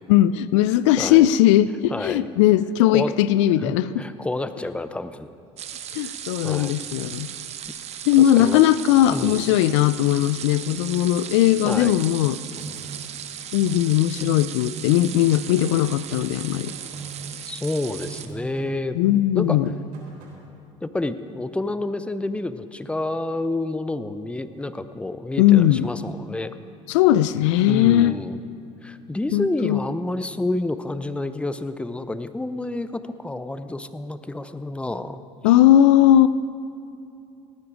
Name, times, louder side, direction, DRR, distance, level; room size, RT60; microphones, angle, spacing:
voice 1, 0.1-4.0 5.9-7.3 8.1-12.4 13.5-16.7 18.9-19.7 25.4-25.9 26.9-28.2 29.3-29.8 35.4-36.3, left 12 dB, 75° left, 16 dB, 0.4 m, -18 dB
voice 2, 1.0-1.3 1.9-2.2 2.9-3.1 3.6-5.3 6.0-6.1 6.4-6.7 8.2-8.6 9.1-9.4 11.6-11.9 17.5-19.0 19.3-19.6 20.8-26.5 27.7-28.4 28.8-35.2, left 2 dB, 5° left, 12 dB, 0.7 m, -29 dB
sound 1, 5.6-18.3, right 9 dB, 45° right, 0.9 m, -36 dB
sound 2, 11.7-14.8 15.0-17.7 18.0-19.1 19.4-20.5, right 4 dB, 70° right, 3.8 m, -40 dB
18.0 x 9.6 x 5.0 m, 2.6 s
hypercardioid pair, 75°, 15 cm